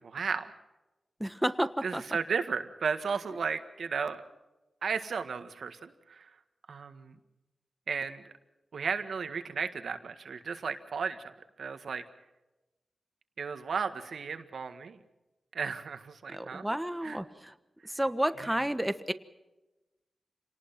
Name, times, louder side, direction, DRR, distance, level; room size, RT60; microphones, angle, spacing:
voice 1, 0.1-0.5 1.8-4.2 4.8-6.3 6.7-7.2 7.9-8.2 8.7-12.0 13.4-15.0 15.5-17.2 18.4-18.6, right 5 dB, 80° right, 9 dB, 1.8 m, -34 dB
voice 2, 1.2-2.0 16.3-17.5 17.9-19.1, right 1 dB, 5° right, 11 dB, 1.2 m, -31 dB
27.5 x 19.0 x 5.9 m, 1.0 s
wide cardioid pair, 100°, 0 cm